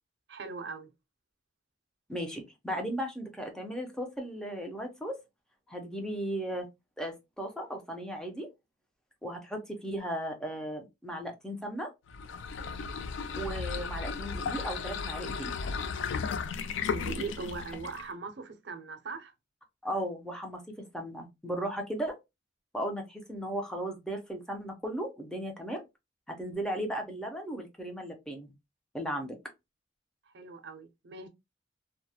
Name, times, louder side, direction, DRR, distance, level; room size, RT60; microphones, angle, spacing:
voice 1, 0.3-0.9 16.9-19.3 30.3-31.3, right 4 dB, 60° right, 0.5 m, -40 dB
voice 2, 2.1-5.2 5.7-6.7 7.0-8.5 9.2-11.9 13.3-15.6 19.8-20.6 20.9-22.1 22.7-25.8 26.3-28.5 28.9-29.4, right 1 dB, 5° left, 0.5 m, -36 dB
sound 1, 12.1-18.1, left 5 dB, 80° left, 0.3 m, -35 dB
2.3 x 2.0 x 2.6 m
head